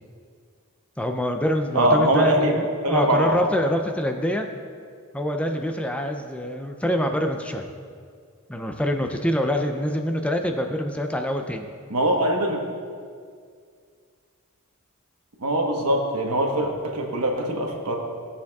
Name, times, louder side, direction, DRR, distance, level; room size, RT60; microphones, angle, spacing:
voice 1, 1.0-4.5 5.1-7.7 8.5-11.7, equal, 5° left, 4 dB, 0.4 m, -25 dB
voice 2, 1.7-2.5 2.8-3.4 11.9-12.6 15.4-18.0, right 1 dB, 85° right, 1 dB, 1.2 m, -22 dB
15.5 x 7.0 x 2.4 m, 2.1 s
head